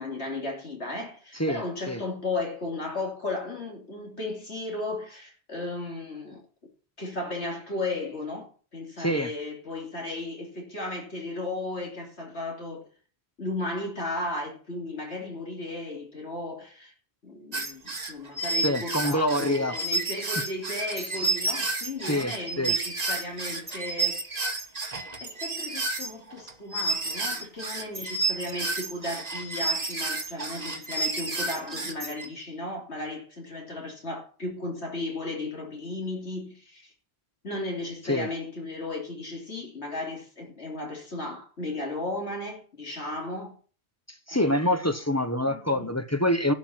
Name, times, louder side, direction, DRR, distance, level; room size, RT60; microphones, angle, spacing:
voice 1, 0.0-6.4 7.0-12.8 13.4-16.9 17.2-24.2 25.2-36.9 37.4-43.5 44.3-44.8 45.5-45.9, left 2 dB, 75° left, 3.2 m, -35 dB
voice 2, 1.3-2.0 9.0-9.3 18.6-19.8 21.0-21.3 22.0-22.7 38.0-38.3 44.1-46.5, left 1 dB, 15° left, 0.9 m, -26 dB
sound 1, 17.5-32.3, right 3 dB, 35° right, 1.6 m, -30 dB
12.0 x 6.3 x 7.5 m
omnidirectional pair, 1.2 m